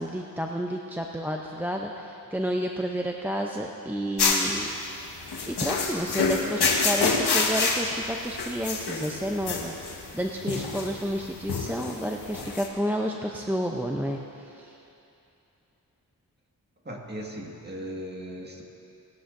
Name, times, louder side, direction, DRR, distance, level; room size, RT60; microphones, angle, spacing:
voice 1, 0.0-4.7 5.5-9.7 10.1-14.7, equal, 5° right, 1 dB, 0.6 m, -30 dB
sound 1, 4.2-12.7, left 4 dB, 80° left, 1.4 m, -27 dB
voice 2, 16.8-18.6, equal, 25° right, -1 dB, 1.8 m, -37 dB
19.5 x 12.0 x 2.6 m, 2.7 s
cardioid pair, 75°, 39 cm